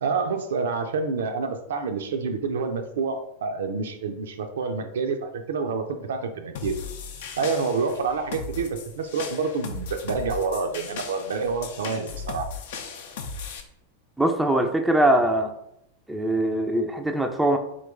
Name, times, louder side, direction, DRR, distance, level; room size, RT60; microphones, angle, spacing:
voice 1, 0.0-6.8 7.4-12.5, right 4 dB, 60° right, 6 dB, 0.4 m, -28 dB
sound 1, 6.6-13.6, left 5 dB, 55° left, 0.5 m, -37 dB
voice 2, 14.2-15.5 16.1-17.6, right 1 dB, 5° right, 4 dB, 0.4 m, -22 dB
3.9 x 2.9 x 3.4 m, 0.80 s
figure-of-eight pair, 90°, 0 cm